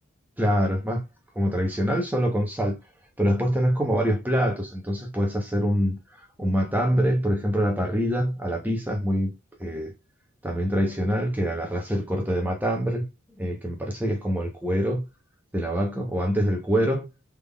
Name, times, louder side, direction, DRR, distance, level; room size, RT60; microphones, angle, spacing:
voice 1, 0.4-1.0 1.4-2.8 3.2-6.0 6.4-9.3 9.6-9.9 10.4-13.1 13.4-15.0 15.5-17.0, equal, 10° right, 0.7 m, -25 dB
3.6 x 3.4 x 2.2 m
head